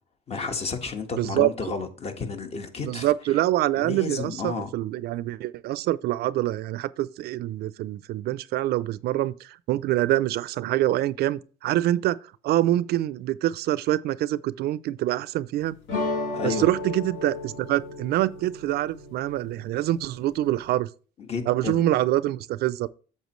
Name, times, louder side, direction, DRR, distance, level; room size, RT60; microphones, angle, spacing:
voice 1, 0.3-3.1 3.8-4.7 16.3-16.7 21.2-21.9, left 4 dB, 35° left, 1.4 m, -32 dB
voice 2, 1.2-1.5 2.8-12.2 12.4-15.7 16.4-20.9 21.5-22.9, right 14 dB, 70° right, 0.4 m, -25 dB
sound 1, 15.9-20.7, left 3 dB, 75° left, 3.8 m, -34 dB
8.1 x 7.0 x 3.1 m
cardioid pair, 110°, 17 cm